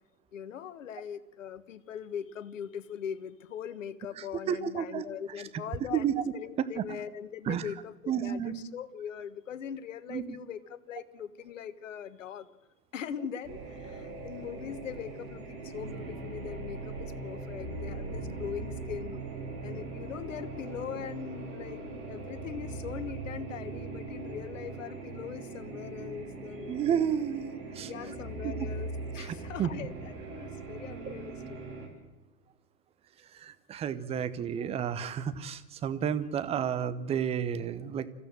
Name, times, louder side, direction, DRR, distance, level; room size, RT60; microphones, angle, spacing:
voice 1, 0.3-12.5 12.9-19.2 19.6-26.8 27.8-31.6, left 8 dB, 55° left, 13 dB, 1.5 m, -41 dB
voice 2, 4.5-5.1 5.9-6.1 6.8-6.9 7.5-7.6 8.1-8.6 10.1-10.4 26.7-27.9 29.2-29.3 29.6-29.7 31.1-31.2 33.3-38.1, right 8 dB, 15° right, 14 dB, 0.9 m, -31 dB
sound 1, 13.4-31.9, right 3 dB, 30° right, 5.2 m, -40 dB
26.0 x 15.5 x 7.6 m, 1.0 s
figure-of-eight pair, 110°, 45 cm